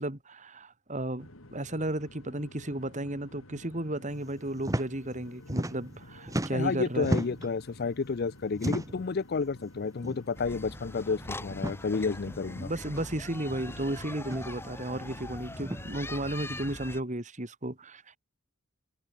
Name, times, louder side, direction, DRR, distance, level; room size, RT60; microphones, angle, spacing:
voice 1, 0.0-7.1 12.6-18.2, right 1 dB, 35° right, 2.7 m, -34 dB
sound 1, 1.2-16.0, left 1 dB, 90° left, 5.6 m, -51 dB
sound 2, 4.6-4.9 5.2-6.0 6.3-7.5 8.5-9.1 10.0-10.2 10.5-10.6 11.5-11.8 12.9-13.0 14.2-14.5 15.6-15.8, right 1 dB, 15° right, 1.2 m, -33 dB
voice 2, 6.5-12.7, left 4 dB, 50° left, 0.5 m, -31 dB
sound 3, 10.4-17.0, left 1 dB, 10° left, 2.1 m, -42 dB
head